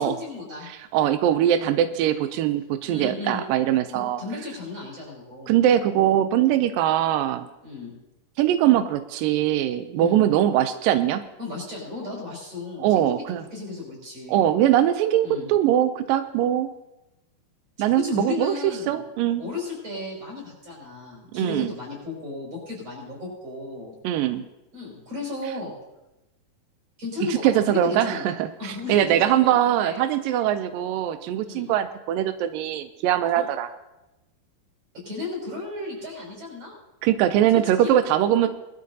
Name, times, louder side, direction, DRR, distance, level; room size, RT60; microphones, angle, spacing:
voice 1, 0.0-0.7 2.8-3.4 3.9-5.5 7.6-7.9 9.9-10.2 11.4-13.2 13.5-14.5 15.2-15.5 17.8-19.0 19.4-23.9 24.7-25.8 27.0-28.2 28.6-30.0 31.5-31.7 33.3-33.4 35.0-36.7 37.8-37.9 38.4-38.5, left 3 dB, 40° right, -4 dB, 6.8 m, -34 dB
voice 2, 0.7-4.2 5.5-7.5 8.4-11.2 12.8-13.4 14.3-16.7 17.8-19.4 21.3-21.7 24.0-24.4 27.2-33.7 37.0-38.5, right 11 dB, 85° right, 10 dB, 2.0 m, -22 dB
20.5 x 12.5 x 2.7 m, 0.98 s
omnidirectional pair, 4.5 m